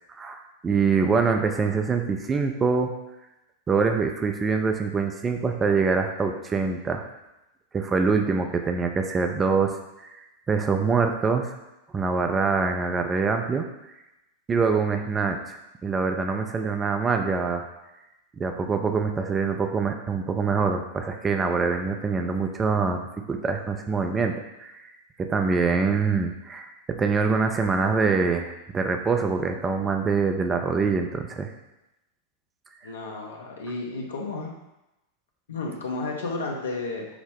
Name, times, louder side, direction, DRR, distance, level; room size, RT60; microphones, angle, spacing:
voice 1, 0.2-2.9 3.7-7.0 7.7-9.8 10.5-11.5 11.9-13.7 14.5-17.7 18.4-23.0 23.3-24.8 25.2-31.5, right 4 dB, 20° right, 5 dB, 0.4 m, -24 dB
voice 2, 32.8-34.5 35.5-37.1, left 3 dB, 65° left, 0 dB, 0.7 m, -32 dB
5.9 x 2.0 x 3.5 m, 0.95 s
figure-of-eight pair, 90°, 0 cm